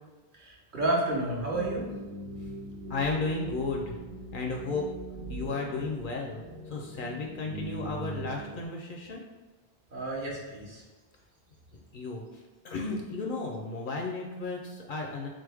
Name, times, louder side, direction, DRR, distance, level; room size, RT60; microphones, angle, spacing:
voice 1, 0.3-1.9 9.9-10.8, right 1 dB, 55° right, -3 dB, 1.1 m, -30 dB
sound 1, 1.5-8.6, right 2 dB, 80° right, 1.1 m, -41 dB
voice 2, 2.9-4.0 4.3-4.9 5.3-9.2 11.9-12.2 12.6-15.3, left 3 dB, 60° left, 1 dB, 0.6 m, -33 dB
3.8 x 3.3 x 3.4 m, 1.2 s
omnidirectional pair, 1.1 m